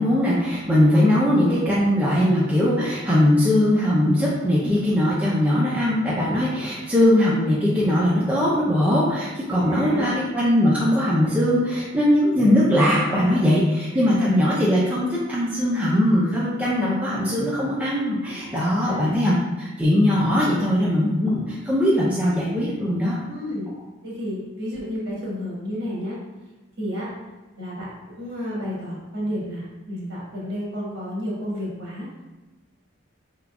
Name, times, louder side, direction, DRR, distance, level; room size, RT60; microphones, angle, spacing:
voice 1, 0.0-23.2, left 1 dB, 5° right, -7 dB, 0.5 m, -20 dB
voice 2, 9.6-10.2 14.1-14.3 18.6-19.1 23.3-23.7 24.0-26.2 26.8-27.1 27.6-32.1, equal, 55° right, -5 dB, 1.5 m, -31 dB
4.6 x 3.8 x 2.3 m, 1.2 s
head